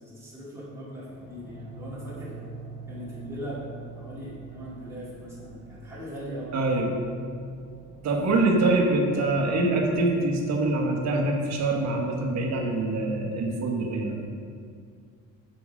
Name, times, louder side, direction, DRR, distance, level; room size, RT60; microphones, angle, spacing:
voice 1, 0.0-2.4 2.9-3.6 3.9-6.6, equal, 10° right, -9 dB, 2.2 m, -40 dB
sound 1, 1.1-13.0, right 4 dB, 30° right, 1.7 m, -46 dB
voice 2, 6.5-6.9 8.0-14.3, right 2 dB, 60° right, 0 dB, 1.3 m, -24 dB
8.1 x 5.5 x 5.1 m, 2.2 s
cardioid pair, 170°, 31 cm